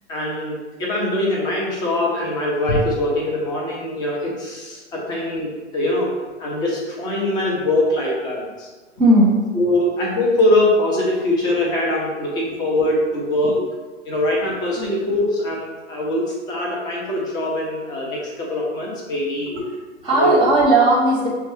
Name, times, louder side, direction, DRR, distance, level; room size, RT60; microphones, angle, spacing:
voice 1, 0.1-6.1 6.4-8.7 9.5-13.6 14.1-19.5 20.1-20.4, left 1 dB, 10° left, -3 dB, 0.6 m, -22 dB
voice 2, 9.0-9.3 9.8-9.9 13.5-13.6 14.8-15.0 19.4-19.7 20.0-21.3, right 1 dB, 15° right, -6 dB, 0.8 m, -17 dB
6.0 x 2.3 x 3.1 m, 1.3 s
figure-of-eight pair, 110°, 37 cm